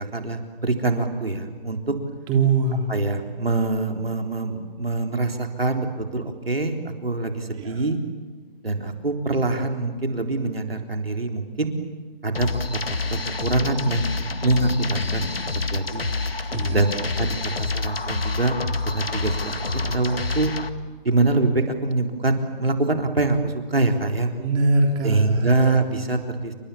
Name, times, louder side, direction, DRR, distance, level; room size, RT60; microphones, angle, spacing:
voice 1, 0.0-1.8 2.9-6.8 7.0-8.0 8.6-11.7 12.2-12.8 13.1-14.1 14.4-15.3 15.7-16.1 16.7-18.6 18.8-20.5 21.0-24.3 25.0-26.5, right 2 dB, 90° right, 4 dB, 3.9 m, -24 dB
voice 2, 2.3-2.9 7.6-7.8 16.5-16.9 24.3-25.5, right 3 dB, 15° right, 1 dB, 3.7 m, -22 dB
sound 1, 12.3-20.7, left 3 dB, 85° left, 2.0 m, -28 dB
29.5 x 26.0 x 7.3 m, 1.4 s
figure-of-eight pair, 150°, 29 cm